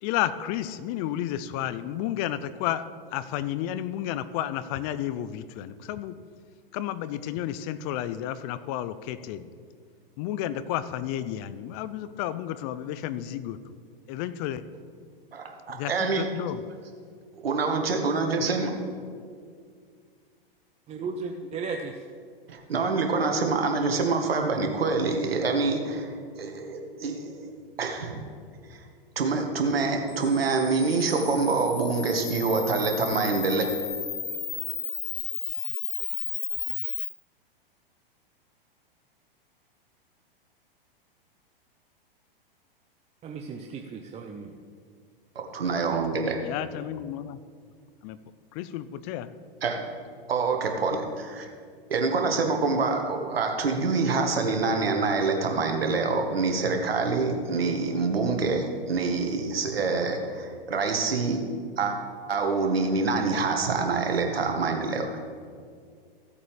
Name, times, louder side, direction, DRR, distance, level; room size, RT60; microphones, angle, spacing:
voice 1, 0.0-6.1 6.7-9.5 10.2-13.6 14.1-14.6 15.7-16.6 46.4-47.4 48.0-48.2 48.5-49.3, left 12 dB, 40° left, 14 dB, 0.6 m, -32 dB
voice 2, 15.3-16.3 17.4-18.7 22.5-27.5 27.8-28.2 28.7-28.9 29.1-33.7 45.3-46.4 49.6-49.8 50.3-51.5 51.9-61.4 61.8-61.9 62.3-65.2, right 4 dB, 85° right, 4 dB, 1.6 m, -26 dB
voice 3, 20.9-22.0 43.2-44.5, right 4 dB, 20° right, 3 dB, 0.7 m, -35 dB
Camera, 30.1-37.1, left 7 dB, 20° left, 1.5 m, -33 dB
16.0 x 8.3 x 3.4 m, 2.1 s
hypercardioid pair, 110°, 29 cm